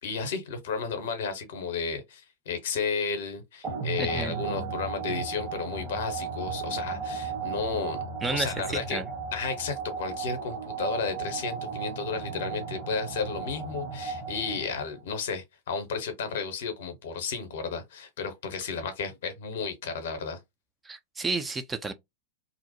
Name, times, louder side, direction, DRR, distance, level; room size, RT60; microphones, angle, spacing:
voice 1, 0.0-8.0 8.3-9.0 9.3-20.4, left 5 dB, 60° left, 0.7 m, -33 dB
sound 1, 3.6-15.0, right 5 dB, 35° right, 0.9 m, -35 dB
voice 2, 4.0-4.3 8.2-9.1 20.8-21.9, right 3 dB, 15° right, 0.3 m, -31 dB
2.6 x 2.0 x 2.8 m
figure-of-eight pair, 90°, 0 cm